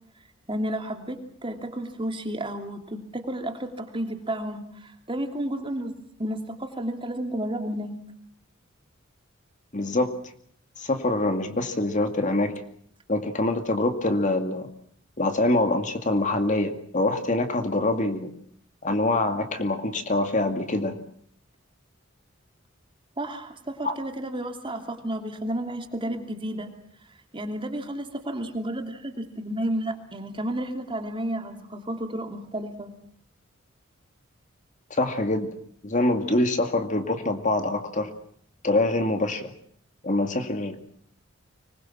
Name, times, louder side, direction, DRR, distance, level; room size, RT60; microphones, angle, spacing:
voice 1, 0.5-5.9 6.2-7.9 23.2-26.7 27.3-32.9, right 1 dB, 25° right, 5 dB, 2.9 m, -32 dB
voice 2, 9.7-10.1 10.8-12.5 13.1-14.7 15.2-18.3 18.8-21.0 23.8-23.9 34.9-35.5 35.8-38.1 38.6-39.5 40.0-40.8, left 2 dB, 40° left, 7 dB, 2.3 m, -25 dB
25.0 x 21.0 x 7.4 m, 0.63 s
head